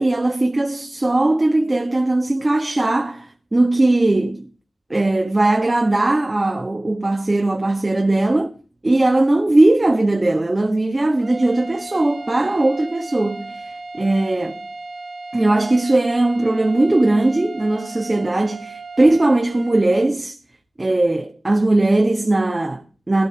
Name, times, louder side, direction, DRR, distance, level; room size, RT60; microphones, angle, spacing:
voice 1, 0.0-4.5 4.9-8.5 8.8-13.6 13.9-14.6 15.3-20.4 20.8-23.3, right 2 dB, 30° right, 1.5 m, -19 dB
sound 1, 11.1-20.1, right 3 dB, 60° right, 3.2 m, -36 dB
15.5 x 11.0 x 4.7 m
cardioid pair, 60°, 0 cm